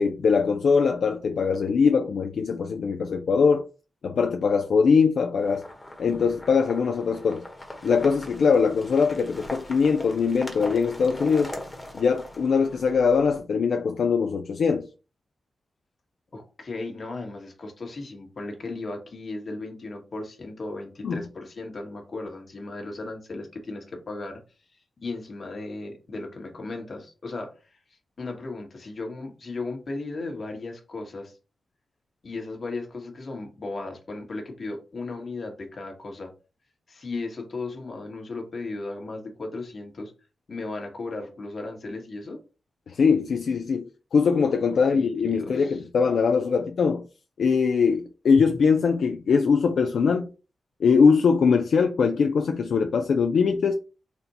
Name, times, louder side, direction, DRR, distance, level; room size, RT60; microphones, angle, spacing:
voice 1, 0.0-3.6 4.0-5.6 6.0-7.4 7.8-11.5 11.9-14.9 21.0-21.2 42.9-47.0 47.4-50.3 50.8-53.7, left 5 dB, 80° left, 0.3 m, -22 dB
sound 1, 5.4-13.4, left 1 dB, 20° left, 1.1 m, -41 dB
voice 2, 16.3-24.4 25.0-27.8 28.2-31.4 32.2-36.3 36.9-40.1 40.5-42.4 44.9-45.8, left 3 dB, 55° left, 1.3 m, -36 dB
4.2 x 2.2 x 4.0 m
wide cardioid pair, 90°, 0 cm